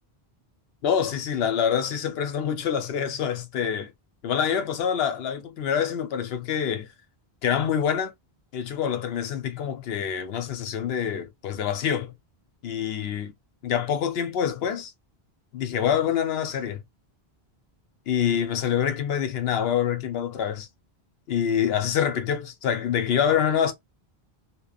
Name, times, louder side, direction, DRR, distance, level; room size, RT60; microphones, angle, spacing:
voice 1, 0.8-3.9 4.2-6.9 7.4-8.1 8.5-12.1 12.6-13.3 13.6-14.9 15.5-16.8 18.1-20.7 21.3-23.7, left 8 dB, 70° left, 0.8 m, -26 dB
2.9 x 2.0 x 2.3 m
omnidirectional pair, 1.1 m